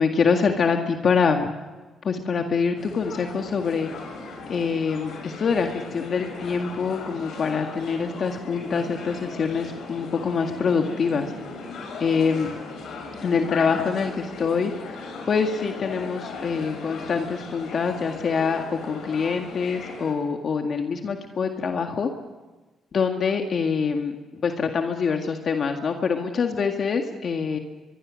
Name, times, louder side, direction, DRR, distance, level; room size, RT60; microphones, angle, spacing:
voice 1, 0.0-1.5 2.0-3.9 4.5-11.3 12.0-12.6 13.2-14.7 15.3-22.1 22.9-24.1 24.4-27.6, left 5 dB, 50° left, 4 dB, 1.9 m, -25 dB
sound 1, 2.8-20.1, left 3 dB, 75° left, 7.0 m, -38 dB
23.5 x 23.5 x 6.4 m, 1.2 s
cardioid pair, 90°, 0 cm